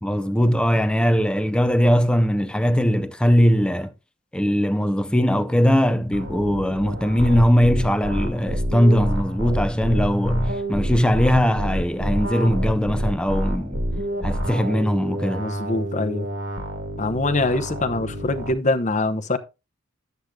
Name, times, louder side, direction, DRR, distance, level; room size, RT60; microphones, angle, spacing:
voice 1, 0.0-3.9 4.3-13.8 14.2-15.4, equal, 5° left, 0.5 m, -20 dB
sound 1, 6.1-18.5, equal, 80° right, 2.0 m, -28 dB
voice 2, 15.4-16.3 17.0-19.4, left 2 dB, 35° left, 0.8 m, -24 dB
11.5 x 8.1 x 2.3 m
head